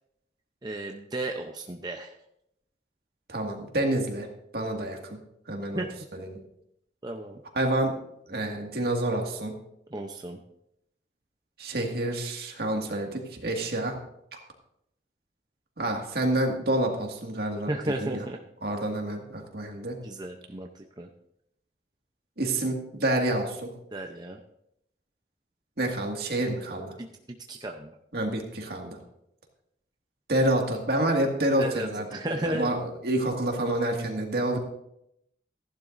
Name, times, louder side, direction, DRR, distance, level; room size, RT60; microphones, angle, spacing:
voice 1, 0.6-2.1 5.7-5.9 7.0-7.4 9.9-10.4 17.7-18.4 20.0-21.1 23.9-24.4 27.0-27.1 27.5-27.9 31.6-32.7, right 1 dB, 25° right, 3 dB, 0.6 m, -34 dB
voice 2, 3.3-4.3 4.5-5.2 5.5-6.4 7.5-7.9 8.3-9.5 11.6-14.0 15.8-17.7 18.0-18.2 18.6-20.0 22.4-23.7 25.8-26.9 28.1-29.0 30.3-32.1 32.4-32.8 33.0-34.6, right 1 dB, 60° right, 2 dB, 2.0 m, -28 dB
15.5 x 11.0 x 2.6 m, 0.78 s
head